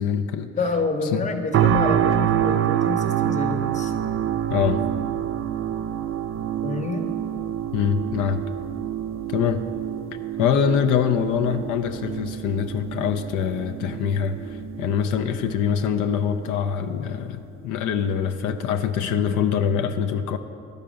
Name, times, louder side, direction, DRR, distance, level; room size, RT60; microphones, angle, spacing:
voice 1, 0.0-0.5 1.1-1.3 4.5-4.8 7.7-8.4 9.3-9.6 10.4-20.4, left 7 dB, 85° left, 8 dB, 0.5 m, -24 dB
voice 2, 0.6-3.9 6.6-7.1, left 3 dB, 25° left, 6 dB, 0.8 m, -27 dB
sound 1, 1.5-16.5 17.0-17.2, right 11 dB, 45° right, 0.4 m, -27 dB
12.0 x 4.6 x 5.0 m, 2.5 s
cardioid pair, 90°, 30 cm